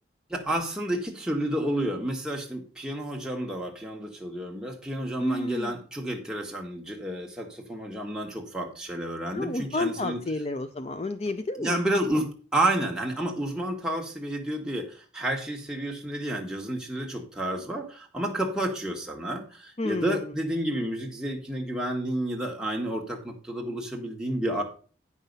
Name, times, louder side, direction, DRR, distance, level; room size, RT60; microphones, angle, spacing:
voice 1, 0.3-10.2 11.6-24.6, right 1 dB, 5° right, 0 dB, 1.5 m, -30 dB
voice 2, 5.2-5.7 9.3-11.8 19.8-20.3, left 2 dB, 35° left, 9 dB, 0.4 m, -31 dB
9.3 x 5.6 x 5.3 m, 0.39 s
head